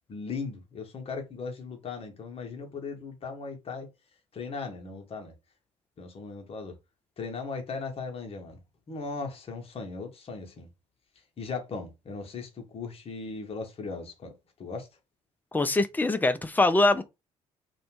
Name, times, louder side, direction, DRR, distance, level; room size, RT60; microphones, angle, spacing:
voice 1, 0.1-3.9 4.3-5.3 6.0-6.7 7.2-8.6 8.9-10.7 11.4-14.3 14.6-14.9, left 4 dB, 35° left, 0.8 m, -37 dB
voice 2, 15.5-17.0, left 2 dB, 10° left, 0.4 m, -23 dB
2.5 x 2.2 x 3.0 m
figure-of-eight pair, 45°, 17 cm